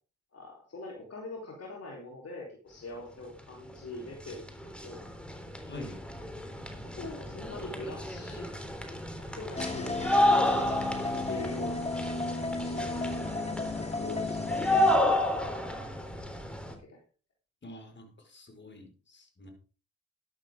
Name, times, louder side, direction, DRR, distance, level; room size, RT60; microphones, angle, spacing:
voice 1, 0.3-5.4 6.8-8.5 9.2-10.0 11.1-12.2 12.6-12.9 13.8-15.2 15.5-15.9 16.6-17.0, left 2 dB, 50° left, -1 dB, 3.9 m, -44 dB
sound 1, 3.7-3.8 4.0-16.7, left 1 dB, 5° left, 3.6 m, -31 dB
voice 2, 5.7-6.0 17.6-19.5, left 2 dB, 35° left, 3 dB, 5.2 m, -46 dB
sound 2, 9.6-15.0, left 3 dB, 20° left, 2.6 m, -34 dB
12.5 x 11.5 x 3.7 m, 0.36 s
supercardioid pair, 50°, 31 cm